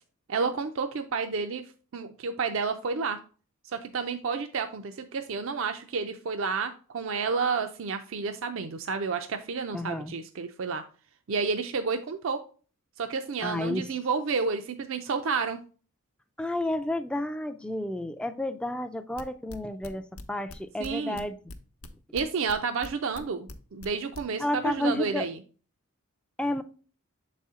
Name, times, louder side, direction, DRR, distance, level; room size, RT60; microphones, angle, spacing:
voice 1, 0.3-1.6 1.9-3.2 3.6-10.8 11.3-12.4 13.0-15.6 20.8-21.2 22.1-25.4, right 5 dB, 60° right, 0.4 m, -30 dB
voice 2, 9.7-10.1 13.4-13.9 16.4-21.4 24.4-25.3 26.4-26.6, left 1 dB, 5° left, 0.3 m, -31 dB
sound 1, 19.2-20.9 21.1-22.9 23.1-24.2, left 2 dB, 70° left, 0.7 m, -42 dB
6.8 x 4.2 x 3.6 m
head